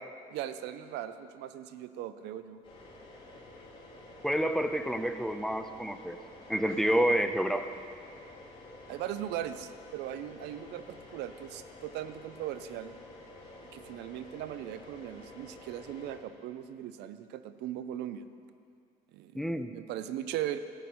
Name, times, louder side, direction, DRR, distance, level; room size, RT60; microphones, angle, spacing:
voice 1, 0.3-2.6 8.9-12.9 13.7-18.2 19.1-20.6, right 11 dB, 85° right, 12 dB, 0.6 m, -39 dB
sound 1, 2.6-16.2, left 2 dB, 30° left, 2.8 m, -50 dB
voice 2, 4.2-6.2 6.5-7.7 19.3-19.7, equal, ahead, 8 dB, 0.5 m, -28 dB
13.5 x 5.9 x 8.5 m, 2.4 s
cardioid pair, 110°, 17 cm